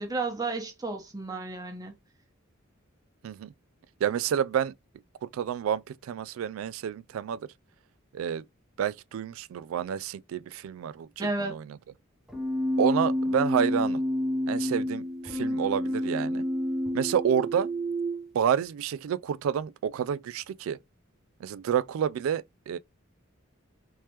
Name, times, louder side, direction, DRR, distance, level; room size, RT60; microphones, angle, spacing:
voice 1, 0.0-2.0 11.2-11.5, right 3 dB, 20° right, 1.0 m, -32 dB
voice 2, 4.0-4.7 5.2-7.5 8.1-8.4 8.8-11.6 12.8-14.0 14.5-16.4 16.9-17.7 18.3-20.8 21.4-22.8, right 8 dB, 90° right, 0.3 m, -29 dB
Keyboard (musical), 12.3-18.3, equal, 5° right, 0.6 m, -29 dB
3.3 x 3.1 x 2.9 m
head